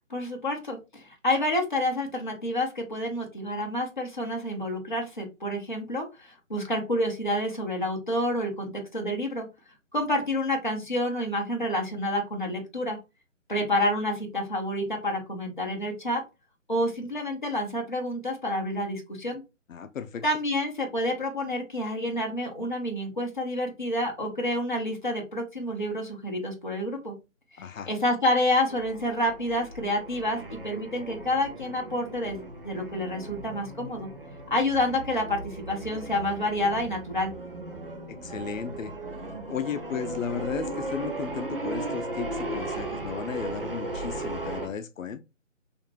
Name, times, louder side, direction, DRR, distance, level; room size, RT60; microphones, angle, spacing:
voice 1, 0.1-9.5 9.9-13.0 13.5-16.2 16.7-19.4 20.2-27.1 27.9-34.1 34.5-37.3, left 1 dB, 40° left, 0.6 m, -28 dB
voice 2, 19.7-20.2 27.6-27.9 38.1-38.9 39.5-45.2, left 7 dB, 80° left, 0.5 m, -35 dB
sound 1, 28.7-44.7, right 2 dB, 45° right, 0.4 m, -37 dB
2.5 x 2.4 x 3.0 m
figure-of-eight pair, 180°, 39 cm